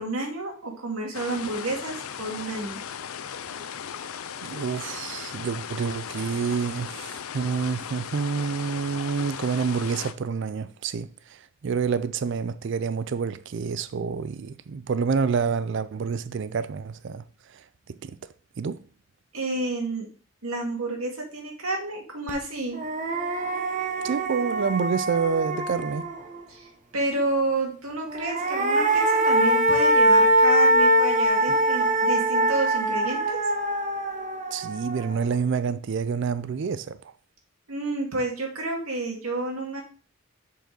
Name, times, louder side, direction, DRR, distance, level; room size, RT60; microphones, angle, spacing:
voice 1, 0.0-2.8 19.3-20.1 20.4-22.8 26.5-33.4 37.7-39.8, right 2 dB, 90° right, 2.1 m, -30 dB
sound 1, 1.1-10.1, left 8 dB, 90° left, 0.5 m, -37 dB
voice 2, 4.4-18.2 18.6-18.8 24.0-26.1 34.5-37.1, right 5 dB, 60° right, 0.4 m, -28 dB
sound 2, 22.3-22.4 22.7-26.4 28.0-35.3, right 1 dB, 35° right, 0.8 m, -23 dB
6.7 x 5.2 x 3.9 m
head